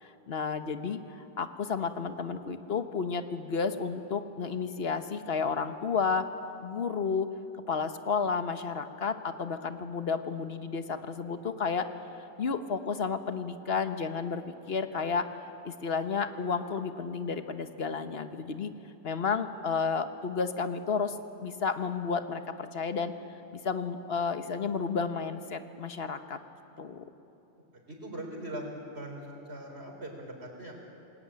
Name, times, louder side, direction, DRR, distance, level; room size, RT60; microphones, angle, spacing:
voice 1, 0.0-6.3 6.6-7.3 7.7-11.9 12.2-18.7 19.0-23.1 23.5-26.4 26.8-27.0, left 5 dB, 70° left, 9 dB, 1.3 m, -32 dB
voice 2, 27.9-28.6 28.9-30.7, right 1 dB, 75° right, 1 dB, 4.4 m, -41 dB
28.0 x 20.5 x 8.7 m, 2.9 s
omnidirectional pair, 1.1 m